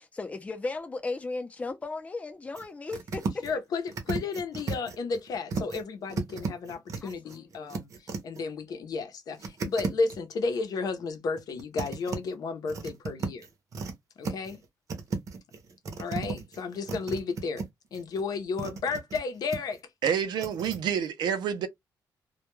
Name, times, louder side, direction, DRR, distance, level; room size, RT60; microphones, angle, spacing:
voice 1, 0.0-3.4 7.0-7.8, left 3 dB, 20° left, 0.5 m, -36 dB
sound 1, 2.5-2.6 2.9-3.5 3.9-5.8 6.1-8.4 9.4-10.2 11.4-12.2 12.7-13.9 14.2-14.6 14.9-17.7 17.9-19.2 19.5-19.8 20.3-20.8, right 4 dB, 50° right, 0.7 m, -34 dB
voice 2, 3.4-7.9 8.2-13.4 14.2-14.6 16.0-17.7 17.9-19.8, left 4 dB, 60° left, 0.7 m, -33 dB
voice 3, 20.0-21.7, right 8 dB, 90° right, 0.5 m, -28 dB
2.2 x 2.2 x 3.0 m
wide cardioid pair, 165°, 7 cm